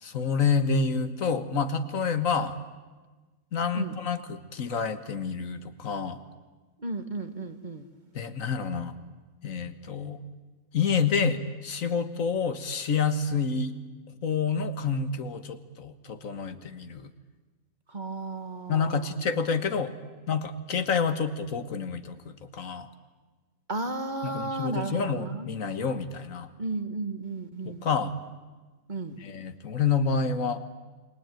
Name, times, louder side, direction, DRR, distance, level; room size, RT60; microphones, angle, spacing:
voice 1, 0.0-2.6 3.5-6.2 8.1-8.9 9.4-10.2 10.7-13.8 14.2-17.1 18.7-19.9 20.3-22.9 24.2-26.5 27.6-28.1 29.1-30.6, left 5 dB, 75° left, 11 dB, 1.8 m, -28 dB
voice 2, 6.8-7.9 17.9-19.1 23.7-25.5 26.6-27.9 28.9-29.2, right 3 dB, 35° right, 8 dB, 1.6 m, -34 dB
28.5 x 21.0 x 9.1 m, 1.3 s
omnidirectional pair, 1.4 m